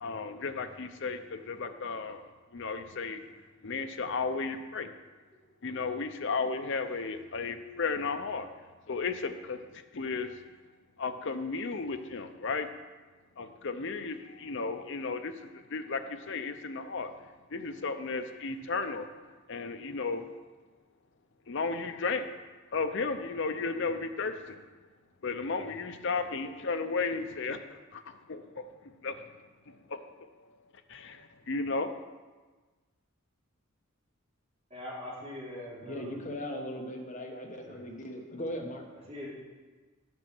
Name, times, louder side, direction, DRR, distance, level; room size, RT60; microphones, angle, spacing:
voice 1, 0.0-3.3 3.6-4.9 5.6-8.5 8.9-10.4 11.0-12.7 13.4-17.1 17.5-19.1 19.5-20.3 21.5-22.3 22.7-24.6 25.2-27.6 27.9-29.3 29.7-30.5 30.9-32.0, left 4 dB, 60° left, 8 dB, 0.6 m, -34 dB
voice 2, 34.7-36.1 37.6-37.8 39.1-39.3, left 1 dB, 30° right, -7 dB, 3.0 m, -42 dB
voice 3, 35.8-38.8, equal, 35° left, 1 dB, 1.3 m, -38 dB
9.3 x 6.4 x 6.0 m, 1.3 s
head